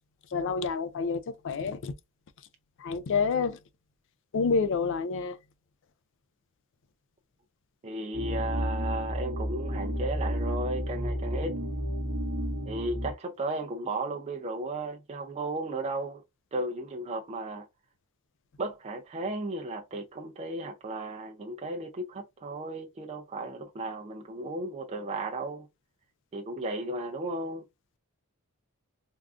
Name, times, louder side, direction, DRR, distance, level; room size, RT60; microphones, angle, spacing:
voice 1, 0.3-1.9 2.8-3.6 4.3-5.4, left 5 dB, 55° left, 0.4 m, -28 dB
voice 2, 7.8-11.6 12.7-16.2 16.5-17.7 18.6-25.7 26.3-27.6, right 2 dB, 30° right, 0.4 m, -35 dB
sound 1, 8.1-13.1, equal, 55° right, 0.8 m, -31 dB
3.5 x 2.4 x 2.4 m
head